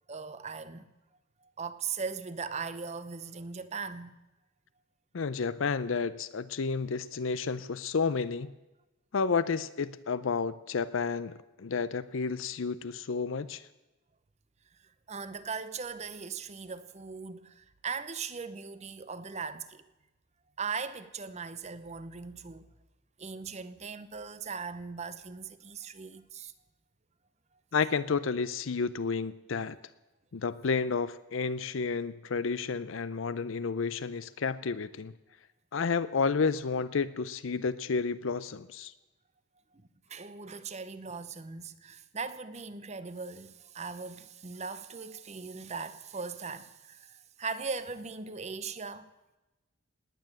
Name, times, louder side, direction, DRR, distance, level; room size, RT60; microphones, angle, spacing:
voice 1, 0.1-0.9 1.4-4.2 15.1-19.8 20.6-22.7 23.2-26.5 39.7-49.1, right 5 dB, 35° right, 0.8 m, -39 dB
voice 2, 5.1-8.5 9.1-13.7 27.7-29.8 30.3-35.1 35.7-38.9, left 5 dB, 70° left, 0.5 m, -31 dB
18.5 x 9.6 x 7.7 m
head